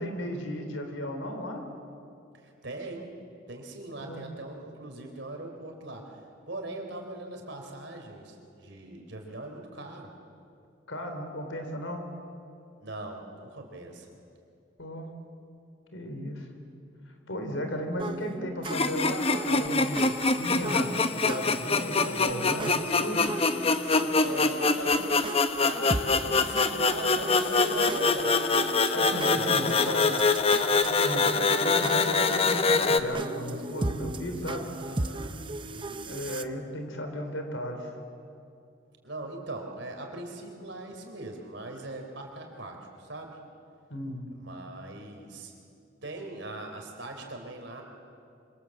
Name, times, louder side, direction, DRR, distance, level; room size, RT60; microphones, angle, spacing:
voice 1, 0.0-1.6 4.0-4.2 10.9-12.0 14.8-15.1 15.9-16.5 17.3-23.3 28.9-30.3 30.7-34.6 36.0-37.9 43.9-44.2, equal, 80° left, 5 dB, 3.9 m, -34 dB
voice 2, 2.3-3.0 3.5-10.1 12.8-14.1 23.8-25.0 25.6-28.4 29.0-29.7 34.4-36.0 39.0-43.4 44.3-45.5 46.0-47.8, right 2 dB, 65° right, 3 dB, 4.0 m, -41 dB
sound 1, 18.0-36.4, right 2 dB, 25° right, 0.8 m, -37 dB
sound 2, 18.7-33.0, left 3 dB, 30° left, 1.0 m, -25 dB
26.0 x 25.5 x 7.8 m, 2.6 s
head